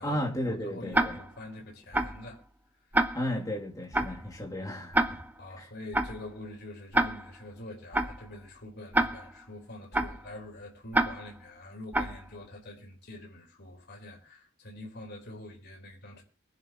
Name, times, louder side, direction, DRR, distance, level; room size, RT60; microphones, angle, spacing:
voice 1, 0.0-1.2 3.1-5.2 5.6-5.7, equal, 15° left, 2.9 m, -34 dB
voice 2, 0.6-2.4 5.4-16.2, left 1 dB, 55° left, 4.4 m, -45 dB
Tick-tock, 0.9-1.4 1.9-2.3 2.9-3.4 3.9-4.3 4.9-5.4 5.9-6.3 6.9-7.4 7.9-8.3 8.9-9.4 9.9-10.3 10.9-11.4 11.9-12.3, right 1 dB, 10° right, 0.9 m, -28 dB
22.5 x 11.0 x 3.1 m
head